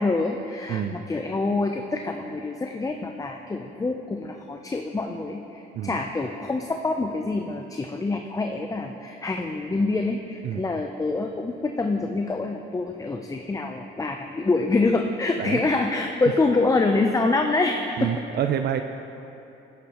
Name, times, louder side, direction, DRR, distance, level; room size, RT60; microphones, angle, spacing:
voice 1, 0.0-18.2, left 3 dB, 15° left, 4 dB, 0.5 m, -26 dB
voice 2, 18.0-18.8, right 10 dB, 55° right, 7 dB, 0.4 m, -27 dB
11.5 x 9.6 x 2.9 m, 2.9 s
cardioid pair, 90°, 20 cm